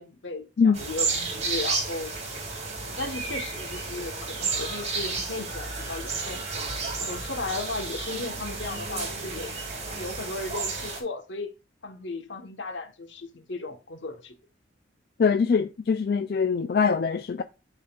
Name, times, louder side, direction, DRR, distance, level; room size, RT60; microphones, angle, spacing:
voice 1, 0.0-2.1 2.8-6.4 7.0-9.5 10.0-11.5 11.8-14.3, left 3 dB, 80° left, 1.2 m, -36 dB
sound 1, 0.7-11.0, right 4 dB, 35° right, 2.1 m, -32 dB
voice 2, 15.2-17.4, left 5 dB, 55° left, 0.3 m, -23 dB
12.0 x 4.0 x 2.3 m
head